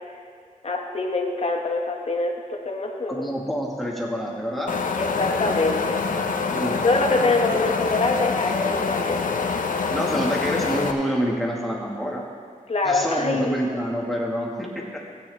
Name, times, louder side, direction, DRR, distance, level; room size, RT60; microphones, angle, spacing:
voice 1, 0.6-3.3 5.0-6.0 6.8-9.2 12.7-13.6, left 3 dB, 50° left, 1 dB, 1.4 m, -24 dB
voice 2, 3.1-4.7 6.5-6.8 7.5-7.6 9.9-12.2 12.8-15.1, equal, ahead, -3 dB, 2.0 m, -27 dB
Wind, 4.7-10.9, left 5 dB, 75° left, 0.8 m, -26 dB
16.0 x 9.1 x 3.5 m, 2.2 s
wide cardioid pair, 95°, 14 cm